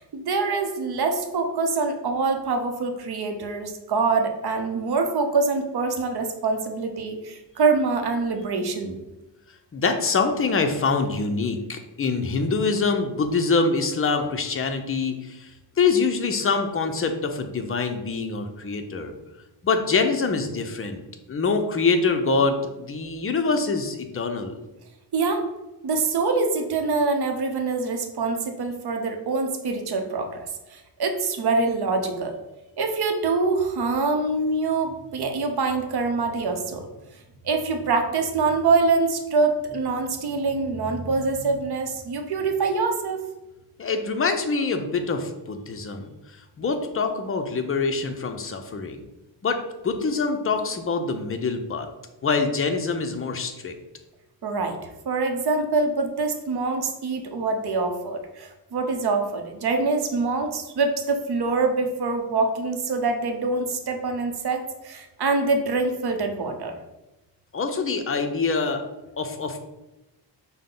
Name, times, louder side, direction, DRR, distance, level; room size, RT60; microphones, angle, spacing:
voice 1, 0.0-9.0 25.1-25.4 25.8-32.3 32.8-36.9 37.4-43.2 54.4-54.8 55.1-66.8, right 3 dB, 60° right, 5 dB, 0.7 m, -25 dB
voice 2, 9.7-15.5 15.8-19.1 19.6-21.0 21.3-24.6 43.8-46.1 46.6-49.0 49.4-51.9 52.2-53.7 67.5-68.8 69.2-69.6, left 4 dB, 30° left, 6 dB, 0.5 m, -25 dB
5.6 x 2.1 x 3.8 m, 1.0 s
cardioid pair, 85°, 43 cm